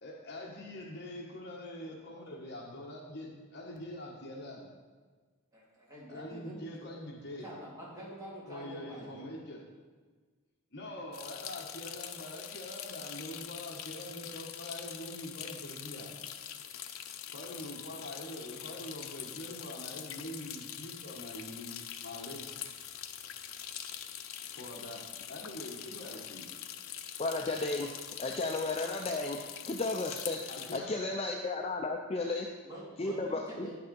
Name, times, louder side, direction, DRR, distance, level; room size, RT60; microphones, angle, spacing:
voice 1, 0.0-4.8 6.1-7.5 8.5-9.6 10.7-16.1 17.3-22.5 24.5-26.5 28.2-28.3 30.5-31.2, left 1 dB, 50° left, 0 dB, 1.4 m, -44 dB
voice 2, 5.5-6.9 7.4-9.3 32.6-33.8, equal, 15° right, -7 dB, 3.2 m, -46 dB
sound 1, 11.1-30.8, left 10 dB, 80° left, 0.6 m, -44 dB
voice 3, 27.2-27.9 28.2-29.4 29.7-32.5 33.0-33.7, left 2 dB, 30° left, 2 dB, 0.5 m, -33 dB
9.6 x 6.8 x 5.3 m, 1.4 s
head